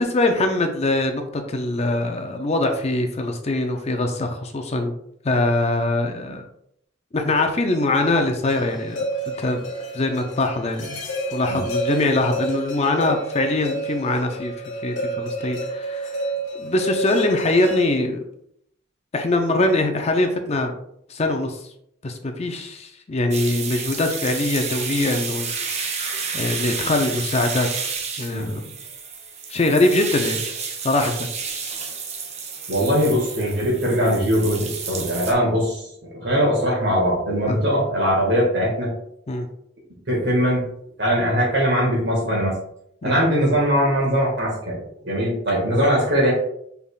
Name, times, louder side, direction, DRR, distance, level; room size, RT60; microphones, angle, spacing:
voice 1, 0.0-4.9 5.2-6.4 7.1-9.6 9.9-11.0 11.3-14.5 14.8-16.2 16.6-18.2 19.1-20.7 21.1-21.6 22.0-26.0 26.3-27.9 28.2-28.8 29.5-30.5 30.8-31.3 37.5-37.6 39.3-39.5 43.0-43.2, left 2 dB, 30° left, 5 dB, 0.5 m, -23 dB
sound 1, 8.4-17.8, right 1 dB, 65° left, 1.2 m, -30 dB
sound 2, 23.3-35.3, right 5 dB, 35° right, 0.5 m, -30 dB
voice 2, 32.7-38.9 40.1-40.7 41.0-42.6 43.0-46.3, equal, 60° right, -4 dB, 1.8 m, -21 dB
5.4 x 3.4 x 2.4 m, 0.72 s
head